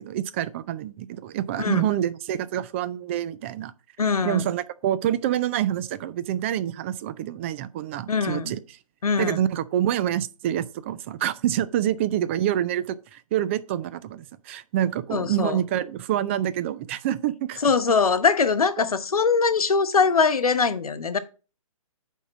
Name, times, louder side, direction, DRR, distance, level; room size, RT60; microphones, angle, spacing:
voice 1, 0.0-3.7 4.2-8.6 9.2-17.7 18.8-18.9, right 11 dB, 20° right, 0.4 m, -27 dB
voice 2, 1.6-1.9 4.0-4.5 8.1-8.5 9.0-9.4 15.1-15.6 17.6-21.2, left 5 dB, 85° left, 1.0 m, -22 dB
9.0 x 3.7 x 6.1 m
hypercardioid pair, 145°, 18 cm